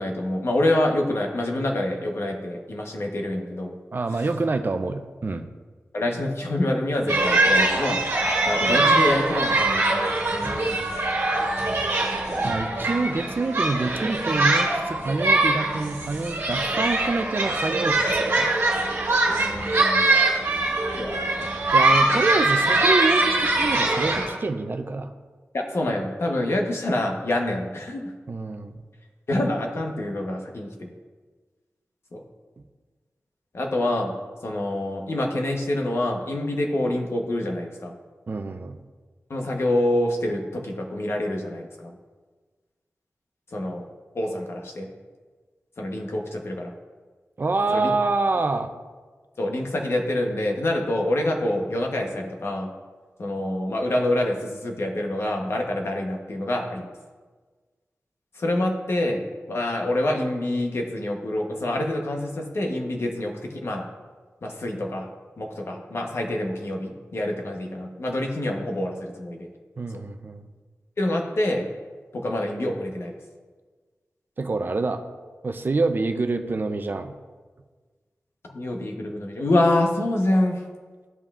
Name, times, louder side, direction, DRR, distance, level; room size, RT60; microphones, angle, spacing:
voice 1, 0.0-3.7 5.9-8.0 8.5-10.8 12.3-12.5 19.3-20.1 20.9-21.5 21.9-22.0 25.5-28.1 29.3-30.9 32.1-32.2 33.5-34.1 34.4-37.9 39.3-41.9 43.5-43.8 44.1-44.9 45.8-46.7 47.7-47.9 49.4-52.7 53.2-56.9 58.4-59.2 59.5-63.8 64.4-65.1 65.4-69.5 71.0-71.7 72.1-73.2 78.5-80.6, left 1 dB, 60° left, 1 dB, 1.0 m, -26 dB
voice 2, 3.9-5.5 12.4-18.6 21.7-25.1 28.3-28.8 38.3-38.8 47.4-48.7 69.8-70.5 74.4-75.0 75.4-77.1, right 3 dB, 45° right, 8 dB, 0.5 m, -26 dB
sound 1, 7.1-24.3, right 2 dB, 70° right, 1.5 m, -22 dB
13.5 x 5.4 x 2.4 m, 1.4 s
wide cardioid pair, 105°, 5 cm